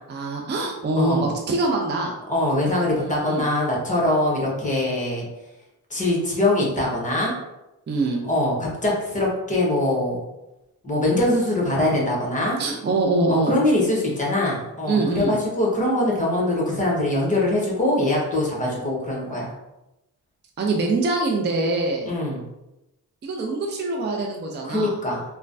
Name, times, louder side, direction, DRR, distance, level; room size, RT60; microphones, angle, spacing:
voice 1, 0.1-2.1 3.0-3.5 7.9-8.2 12.6-13.6 14.9-15.4 20.6-22.1 23.2-24.9, right 2 dB, 30° right, 0 dB, 0.5 m, -24 dB
voice 2, 1.0-1.3 2.3-5.2 5.9-7.3 8.3-10.2 10.8-12.6 13.3-19.5 22.0-22.4 24.6-25.2, left 1 dB, 20° left, -3 dB, 1.1 m, -23 dB
3.1 x 2.2 x 2.6 m, 0.96 s
cardioid pair, 75°, 39 cm